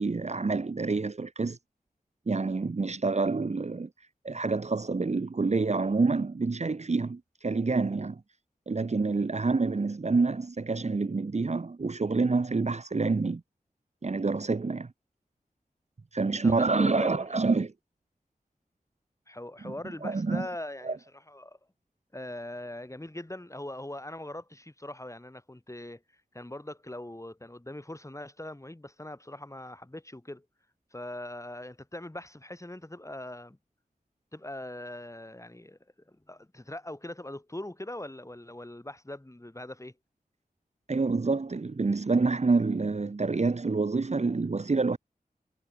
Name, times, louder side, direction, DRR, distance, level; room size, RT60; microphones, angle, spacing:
voice 1, 0.0-1.6 2.3-3.9 4.2-8.2 8.7-13.4 14.0-14.9 16.1-17.7 19.6-19.7 20.0-20.5 20.8-21.0 40.9-45.0, right 3 dB, 45° right, 1.3 m, -27 dB
voice 2, 16.4-17.4 19.3-21.0 21.3-21.6 22.1-26.0 26.3-30.5 30.9-33.6 34.3-35.8 36.1-39.9, left 1 dB, 20° left, 7.8 m, -41 dB
wide cardioid pair, 55°, 15 cm